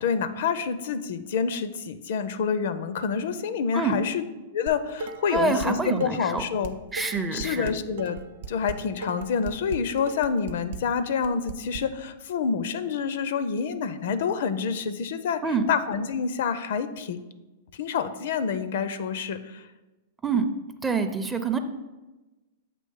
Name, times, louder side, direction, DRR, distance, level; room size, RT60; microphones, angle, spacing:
voice 1, 0.0-4.2 4.5-6.8 7.3-8.2 8.5-15.4 15.7-17.2 17.7-19.7, left 6 dB, 65° left, 12 dB, 0.4 m, -27 dB
Dishes pots and pans, 4.7-5.7 6.0-11.8, right 4 dB, 65° right, 0.5 m, -37 dB
voice 2, 5.3-6.4 6.9-7.7 15.4-15.7 20.2-20.5 20.8-21.6, right 4 dB, 10° right, 7 dB, 0.5 m, -26 dB
7.5 x 3.0 x 5.4 m, 1.1 s
hypercardioid pair, 135°, 0 cm